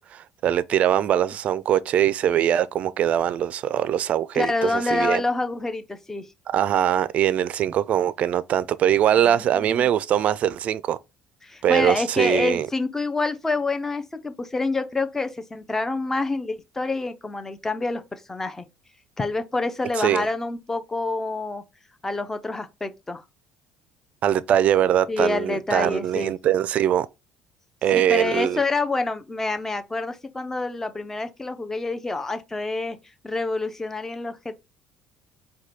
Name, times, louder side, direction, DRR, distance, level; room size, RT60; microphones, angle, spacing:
voice 1, 0.0-5.2 6.5-11.0 11.6-12.7 20.0-20.3 24.2-27.1 27.8-28.6, right 10 dB, 50° right, 0.4 m, -22 dB
voice 2, 4.3-6.3 9.2-9.9 11.4-18.6 19.2-21.6 22.0-23.2 25.1-26.3 27.9-33.0 33.2-34.5, left 3 dB, 15° left, 0.6 m, -27 dB
4.7 x 2.2 x 4.2 m
cardioid pair, 100°, 3 cm